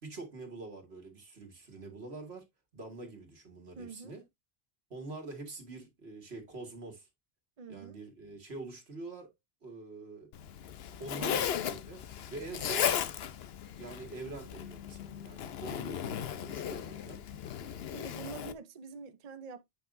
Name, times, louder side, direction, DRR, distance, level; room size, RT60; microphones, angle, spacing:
voice 1, 0.0-4.2 4.9-7.1 7.7-9.3 9.6-10.3 11.0-12.0 12.3-12.9 13.8-17.2, right 3 dB, 90° right, 2.2 m, -45 dB
voice 2, 3.7-4.2 7.6-8.0 11.2-11.4 17.9-19.6, right 4 dB, 45° right, 0.7 m, -45 dB
Zipper (clothing), 10.3-18.5, left 9 dB, 80° left, 0.9 m, -36 dB
8.5 x 5.7 x 2.5 m
omnidirectional pair, 1.0 m